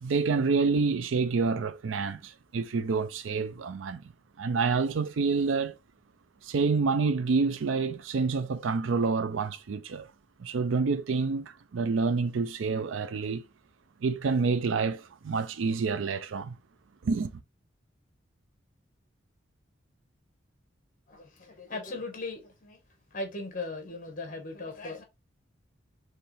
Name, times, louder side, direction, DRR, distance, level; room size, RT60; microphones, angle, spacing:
voice 1, 0.0-4.0 4.4-5.8 6.5-10.1 10.4-13.4 14.0-16.5 17.0-17.3, right 4 dB, 80° right, 0.4 m, -28 dB
voice 2, 21.1-22.8 23.1-25.0, left 2 dB, 45° left, 1.4 m, -38 dB
4.6 x 3.2 x 3.3 m
head